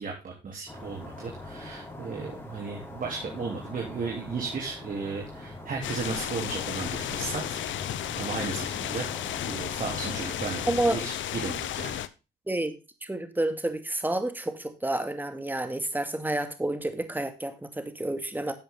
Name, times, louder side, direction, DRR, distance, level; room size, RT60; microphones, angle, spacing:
voice 1, 0.0-7.6 8.2-9.1 9.4-12.0, right 4 dB, 45° right, 0 dB, 3.3 m, -35 dB
sound 1, 0.7-10.8, left 1 dB, 10° left, 4.6 m, -43 dB
sound 2, 5.8-12.1, left 12 dB, 70° left, 0.9 m, -33 dB
voice 2, 10.7-11.0 12.5-12.7 13.0-18.5, right 1 dB, 10° right, 7 dB, 2.3 m, -29 dB
12.5 x 8.0 x 3.7 m, 0.29 s
cardioid pair, 90°, 20 cm